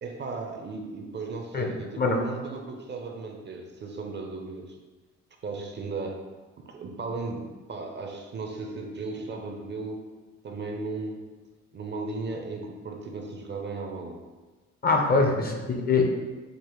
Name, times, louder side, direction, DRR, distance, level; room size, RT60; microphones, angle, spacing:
voice 1, 0.0-4.8 5.4-6.2 6.7-10.1 10.4-11.3 11.7-14.2 15.1-15.5, right 3 dB, 35° right, 3 dB, 0.5 m, -36 dB
voice 2, 1.5-2.2 14.8-16.1, left 3 dB, 30° left, 2 dB, 0.5 m, -24 dB
4.9 x 2.0 x 3.0 m, 1.3 s
cardioid pair, 90°, 30 cm